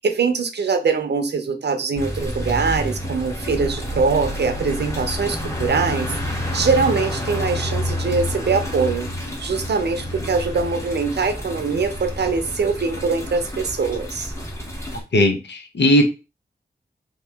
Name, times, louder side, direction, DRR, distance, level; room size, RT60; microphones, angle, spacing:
voice 1, 0.0-9.1 9.4-14.3, right 4 dB, 70° right, 8 dB, 0.6 m, -23 dB
sound 1, 1.9-15.0, left 1 dB, 15° left, 1.1 m, -29 dB
voice 2, 15.1-16.1, left 1 dB, 75° left, 5 dB, 0.7 m, -17 dB
2.9 x 2.8 x 3.3 m, 0.30 s
wide cardioid pair, 70°, 18 cm